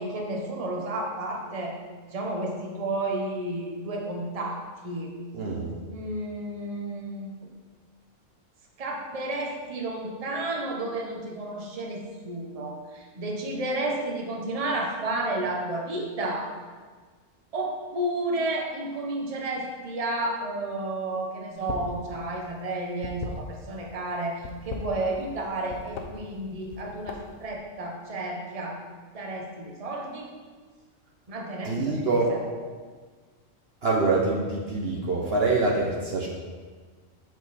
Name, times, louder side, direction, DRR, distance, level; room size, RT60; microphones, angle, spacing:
voice 1, 0.0-1.7 2.1-5.1 5.9-7.3 8.8-16.5 17.5-28.8 29.1-30.3 31.3-32.0 32.3-32.4, right 2 dB, 30° right, 0 dB, 1.0 m, -31 dB
voice 2, 5.3-5.7 31.6-32.3 33.8-36.3, right 3 dB, 55° right, -2 dB, 1.1 m, -25 dB
sound 1, 21.5-22.0 22.3-23.9 24.3-25.4 25.7-26.1 26.6-27.4, left 5 dB, 90° left, 1.2 m, -37 dB
6.9 x 6.2 x 4.2 m, 1.5 s
omnidirectional pair, 1.4 m